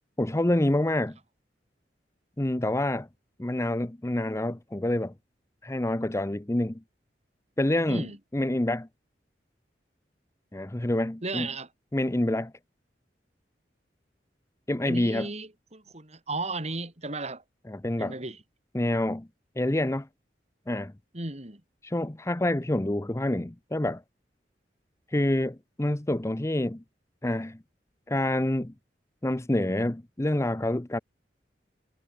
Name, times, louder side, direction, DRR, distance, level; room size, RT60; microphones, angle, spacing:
voice 1, 0.2-1.2 2.4-3.1 3.4-5.1 5.6-6.8 7.6-8.1 8.3-8.9 10.5-11.5 11.9-12.5 14.7-15.3 17.7-18.2 18.7-19.3 19.6-20.1 20.7-20.9 21.8-24.0 25.1-26.8 27.2-27.6 28.1-28.7 29.2-31.0, left 1 dB, 15° left, 0.7 m, -27 dB
voice 2, 7.9-8.2 11.2-11.7 14.9-17.4 18.0-18.4 21.1-21.6, right 3 dB, 40° right, 4.2 m, -35 dB
head